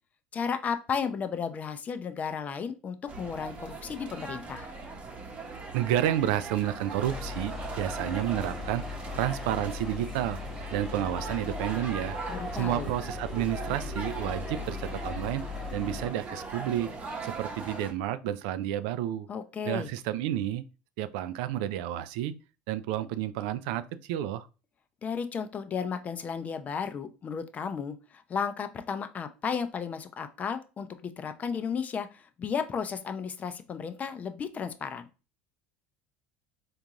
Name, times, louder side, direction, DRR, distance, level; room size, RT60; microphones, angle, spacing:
voice 1, 0.3-4.7 12.3-12.9 19.3-19.9 25.0-35.1, left 6 dB, 35° left, 0.5 m, -34 dB
sound 1, 3.1-17.9, right 3 dB, 30° right, 0.9 m, -40 dB
voice 2, 5.7-8.8 9.1-10.4 10.7-12.2 12.5-15.4 15.7-16.9 17.2-19.3 19.7-20.6 21.0-22.3 22.7-24.5, right 12 dB, 70° right, 0.3 m, -30 dB
sound 2, 7.0-16.1, left 5 dB, ahead, 1.2 m, -39 dB
3.7 x 2.5 x 2.8 m
hypercardioid pair, 85°, 5 cm